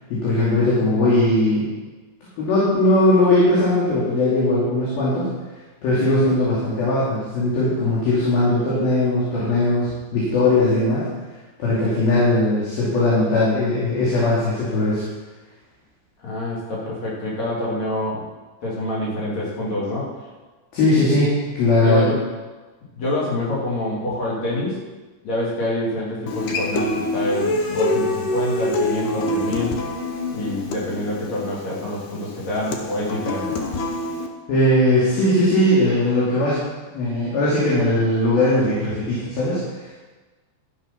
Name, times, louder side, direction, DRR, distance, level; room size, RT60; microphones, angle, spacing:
voice 1, 0.1-1.7 2.4-5.3 5.8-11.1 11.6-15.1 20.7-22.2 34.5-36.6 36.9-40.0, left 1 dB, 60° left, -7 dB, 4.2 m, -19 dB
voice 2, 16.2-18.2 18.6-20.1 21.8-22.2 22.9-24.8 25.2-29.8 30.3-33.6, left 1 dB, 40° left, -6 dB, 4.1 m, -26 dB
Human voice / Acoustic guitar, 26.3-34.3, left 1 dB, 85° left, 1.7 m, -25 dB
12.0 x 8.9 x 5.8 m, 1.3 s
omnidirectional pair, 5.1 m